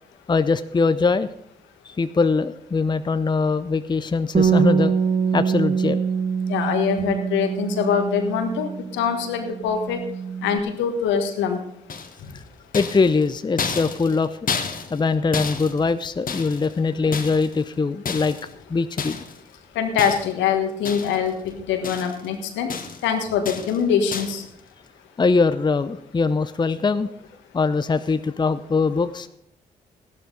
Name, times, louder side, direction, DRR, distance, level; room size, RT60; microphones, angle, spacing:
voice 1, 0.3-1.3 1.8-4.9 5.3-6.0 12.3-12.4 12.7-14.4 14.9-18.4 18.7-19.2 25.2-27.1 27.5-29.3, left 4 dB, 25° left, 12 dB, 0.6 m, -22 dB
Bass guitar, 4.3-9.0 9.3-10.6, right 6 dB, 35° right, 1.9 m, -24 dB
voice 2, 6.5-10.0 10.4-11.6 12.2-12.3 19.7-22.7 23.0-24.4, left 7 dB, 75° left, 6 dB, 1.5 m, -23 dB
sound 1, 11.9-12.3 12.7-15.1 15.3-16.8 17.1-17.6 18.1-18.5 19.0-19.4 20.0-20.5 20.8-21.3 21.6-22.3 22.7-23.1 23.5-23.8 24.1-24.5, left 5 dB, 45° left, 1.4 m, -31 dB
14.5 x 12.0 x 4.0 m, 0.76 s
hypercardioid pair, 40°, 19 cm